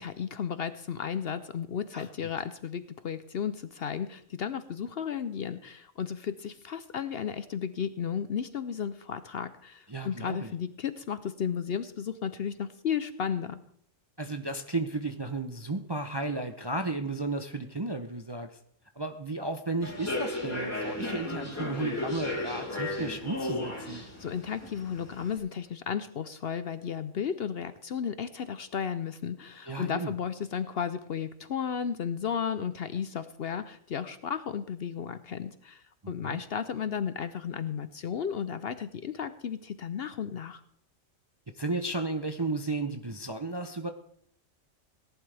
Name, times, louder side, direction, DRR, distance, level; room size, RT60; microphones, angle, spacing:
voice 1, 0.0-13.6 23.9-40.6, left 7 dB, 60° left, 13 dB, 0.8 m, -34 dB
voice 2, 1.9-2.3 9.9-10.5 14.2-18.6 19.0-24.0 29.7-30.1 36.0-36.4 41.6-43.9, right 2 dB, 25° right, 6 dB, 0.6 m, -34 dB
Human voice / Subway metro underground, 19.8-25.4, left 2 dB, 10° left, 3.2 m, -35 dB
17.5 x 11.5 x 3.4 m, 0.66 s
omnidirectional pair, 1.4 m